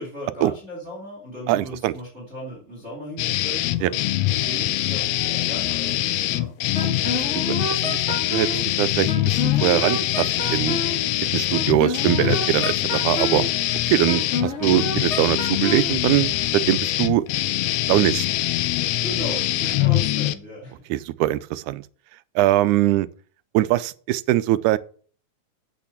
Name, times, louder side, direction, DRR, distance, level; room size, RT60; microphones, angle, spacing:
voice 1, 0.0-6.5 14.3-14.5 19.0-20.8, equal, 20° right, 3.3 m, -36 dB
voice 2, 1.5-1.9 3.8-3.9 6.8-7.2 7.5-8.0 8.3-10.8 11.3-13.4 13.9-17.2 17.9-18.2 20.9-21.8 22.4-23.1 23.5-24.8, right 15 dB, 85° right, 2.1 m, -22 dB
sound 1, 3.2-20.3, left 15 dB, 80° left, 1.5 m, -24 dB
Wind instrument woodwind instrument, 6.7-8.6 9.1-11.0 11.5-13.5 14.1-15.9, left 2 dB, 30° left, 1.6 m, -29 dB
8.4 x 6.4 x 7.2 m
omnidirectional pair, 3.4 m